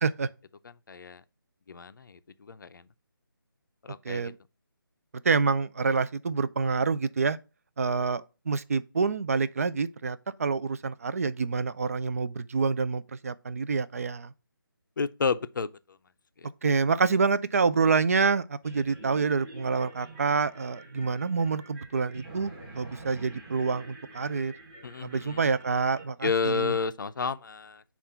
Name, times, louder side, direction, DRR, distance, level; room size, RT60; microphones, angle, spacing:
voice 1, 0.9-1.2 1.7-2.9 3.8-4.3 15.0-15.7 16.4-16.5 24.8-25.5 26.2-27.8, left 5 dB, 60° left, 0.4 m, -31 dB
voice 2, 4.0-4.3 5.2-7.4 7.8-14.3 16.6-24.5 25.0-26.7, right 5 dB, 40° right, 0.3 m, -27 dB
sound 1, 18.6-26.0, right 2 dB, 15° right, 1.2 m, -48 dB
7.2 x 2.4 x 5.5 m
figure-of-eight pair, 165°, 12 cm